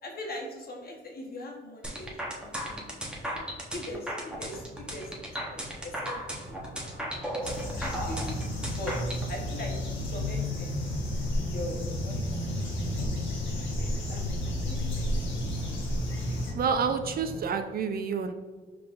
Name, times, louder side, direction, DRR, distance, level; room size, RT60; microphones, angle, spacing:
voice 1, 0.0-3.3 3.7-9.0 9.3-10.7 11.5-14.8, left 1 dB, 50° left, 0 dB, 1.0 m, -42 dB
sound 1, 1.8-9.2, equal, 5° right, 0.9 m, -35 dB
sound 2, 4.6-17.4, equal, 30° right, 1.5 m, -46 dB
sound 3, 7.4-16.5, left 1 dB, 75° left, 1.2 m, -31 dB
voice 2, 16.5-18.3, right 6 dB, 50° right, 7 dB, 0.4 m, -28 dB
4.8 x 3.6 x 2.4 m, 1.4 s
cardioid pair, 90°, 20 cm